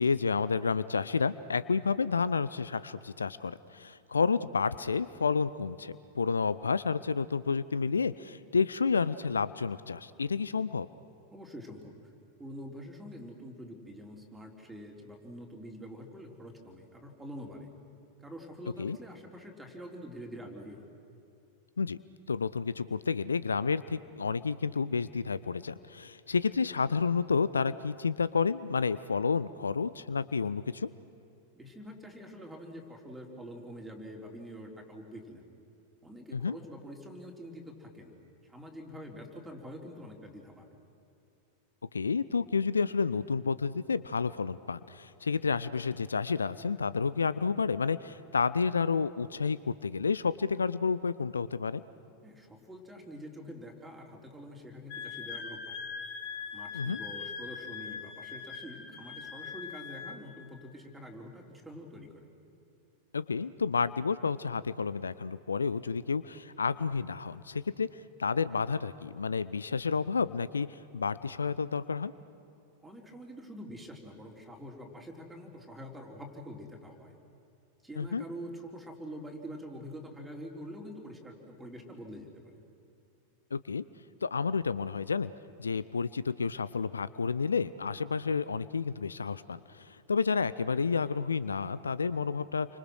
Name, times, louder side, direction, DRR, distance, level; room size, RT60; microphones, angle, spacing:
voice 1, 0.0-10.9 18.8-19.0 21.8-22.0 22.3-30.9 36.3-36.6 41.9-51.8 56.7-57.0 63.1-72.1 78.0-78.2 83.5-83.8 84.2-85.3 85.6-92.7, left 5 dB, 75° left, 17 dB, 0.5 m, -30 dB
voice 2, 11.3-11.9 12.4-17.7 18.2-20.9 31.5-35.4 36.0-38.1 38.4-40.7 52.2-55.8 56.5-62.3 72.8-77.1 77.8-82.5, equal, 5° right, 0 dB, 4.0 m, -46 dB
Wind instrument woodwind instrument, 54.9-60.2, left 6 dB, 45° left, 2.8 m, -41 dB
29.5 x 25.0 x 6.4 m, 2.8 s
figure-of-eight pair, 90°, 0 cm